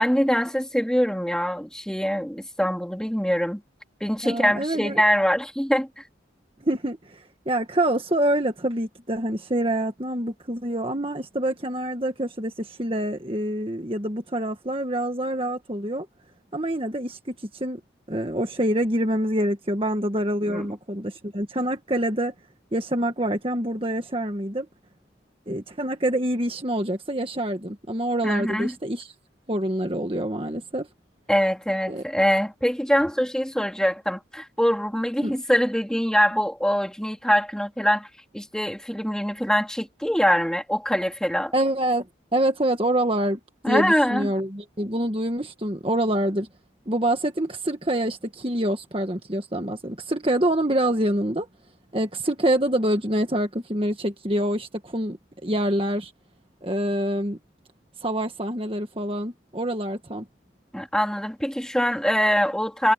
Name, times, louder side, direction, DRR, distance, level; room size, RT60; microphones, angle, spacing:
voice 1, 0.0-3.6 4.0-6.0 20.5-20.7 28.2-28.7 31.3-38.1 38.3-41.5 43.6-44.3 60.7-62.9, equal, 5° left, 2.6 m, -23 dB
voice 2, 4.2-5.0 6.6-16.1 16.5-17.8 18.1-22.3 22.7-24.7 25.5-29.1 29.5-30.9 31.9-32.0 35.2-35.3 41.5-42.1 42.3-43.4 43.7-46.5 46.9-51.5 51.9-55.2 55.4-56.1 56.6-57.4 58.0-60.2, right 1 dB, 30° right, 1.7 m, -26 dB
head